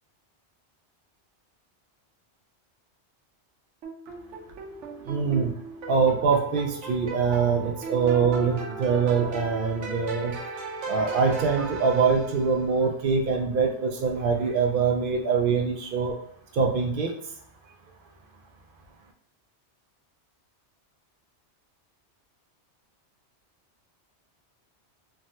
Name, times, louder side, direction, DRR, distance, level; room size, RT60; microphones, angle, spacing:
sound 1, 3.8-12.7, right 2 dB, 85° right, 1.0 m, -37 dB
voice 1, 5.1-5.6 5.9-10.4 10.9-16.1 16.5-17.1, right 5 dB, 60° right, 2 dB, 0.6 m, -24 dB
3.4 x 2.1 x 2.7 m, 0.67 s
omnidirectional pair, 1.2 m